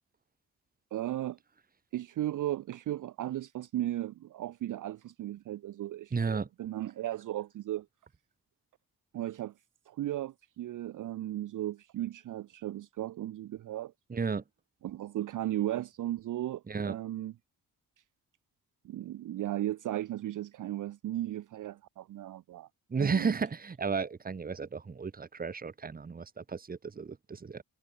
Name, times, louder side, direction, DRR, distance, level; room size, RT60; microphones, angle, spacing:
voice 1, 0.9-1.4 1.9-7.9 9.1-9.5 9.9-13.9 14.8-17.3 18.8-22.7 23.0-23.4, right 13 dB, 55° right, 0.5 m, -36 dB
voice 2, 6.1-6.5 14.1-14.4 16.7-16.9 22.9-27.6, right 5 dB, 25° right, 0.8 m, -33 dB
cardioid pair, 85°, 38 cm